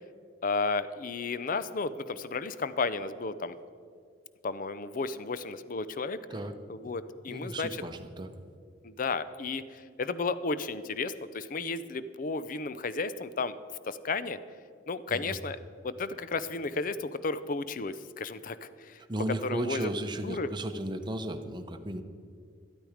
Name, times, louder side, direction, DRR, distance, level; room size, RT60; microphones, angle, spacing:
voice 1, 0.4-3.6 4.4-6.2 6.7-7.8 8.8-13.6 13.9-14.4 14.9-15.6 15.8-19.0 19.4-19.9 20.2-20.5, left 4 dB, 50° left, 14 dB, 0.5 m, -33 dB
voice 2, 7.3-8.3 15.1-15.4 19.1-22.0, right 1 dB, 25° right, 7 dB, 0.8 m, -34 dB
12.5 x 12.5 x 5.0 m, 2.3 s
head